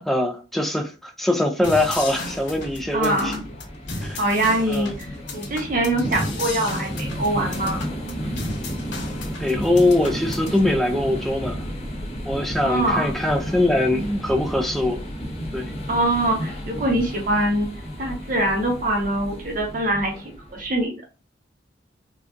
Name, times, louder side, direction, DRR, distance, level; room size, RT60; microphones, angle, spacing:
voice 1, 0.0-3.3 4.0-4.2 4.7-4.9 9.4-11.6 12.3-15.0 15.5-15.7, left 1 dB, ahead, 0.4 m, -22 dB
sound 1, 1.6-10.6, left 2 dB, 75° left, 1.0 m, -35 dB
sound 2, 1.8-20.8, equal, 35° left, 0.8 m, -33 dB
voice 2, 2.9-3.4 4.1-7.9 12.6-13.1 15.9-17.7 18.0-21.0, right 1 dB, 45° right, 0.8 m, -23 dB
3.8 x 2.3 x 2.4 m
head